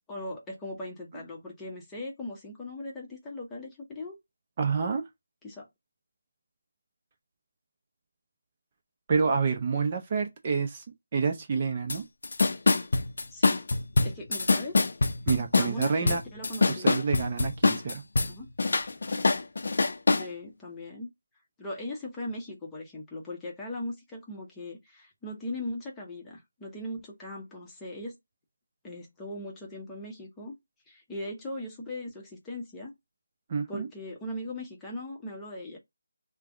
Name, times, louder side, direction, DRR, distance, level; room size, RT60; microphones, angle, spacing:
voice 1, 0.1-4.1 5.4-5.7 13.3-13.6 14.0-14.9 15.6-17.0 18.3-18.5 20.1-21.1 21.6-28.2 28.8-30.5 30.9-32.9 33.7-35.8, left 1 dB, 10° left, 0.8 m, -39 dB
voice 2, 4.6-5.0 9.1-10.8 11.1-12.0 15.3-16.2 16.7-18.0 33.5-33.9, right 5 dB, 30° right, 0.5 m, -28 dB
sound 1, 11.9-12.0 12.2-18.3 18.6-20.3, left 3 dB, 60° left, 0.5 m, -24 dB
3.3 x 2.1 x 3.5 m
figure-of-eight pair, 165°, 0 cm